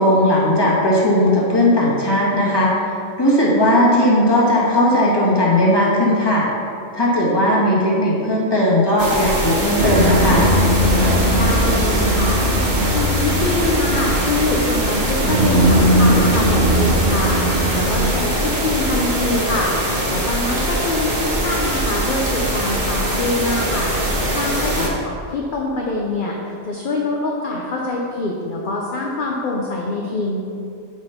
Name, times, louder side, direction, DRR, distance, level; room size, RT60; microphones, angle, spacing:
voice 1, 0.0-2.9 3.2-6.5 6.9-10.6 24.7-24.9, left 1 dB, 20° left, -5 dB, 1.6 m, -17 dB
sound 1, 9.0-24.9, right 1 dB, 35° right, 1.3 m, -22 dB
sound 2, 9.8-19.6, equal, 65° right, 1.5 m, -20 dB
voice 2, 11.3-12.4 12.9-19.7 20.1-23.9 24.3-30.4, left 2 dB, 45° left, -2 dB, 0.8 m, -24 dB
6.6 x 5.1 x 5.7 m, 2.5 s
omnidirectional pair, 1.3 m